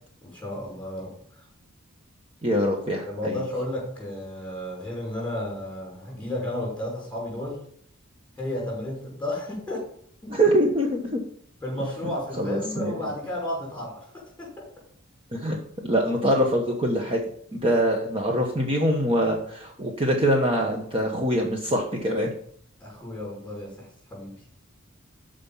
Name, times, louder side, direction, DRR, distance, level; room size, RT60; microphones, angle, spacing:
voice 1, 0.2-1.5 3.0-7.6 8.4-9.8 10.2-10.3 11.6-14.1 14.4-14.6 22.8-24.3, left 1 dB, 5° left, -3 dB, 5.6 m, -33 dB
voice 2, 2.4-3.3 10.3-11.2 12.4-12.9 15.3-15.6 15.8-17.2 17.5-22.3, equal, 25° right, 1 dB, 1.2 m, -24 dB
13.0 x 5.2 x 5.6 m, 0.62 s
head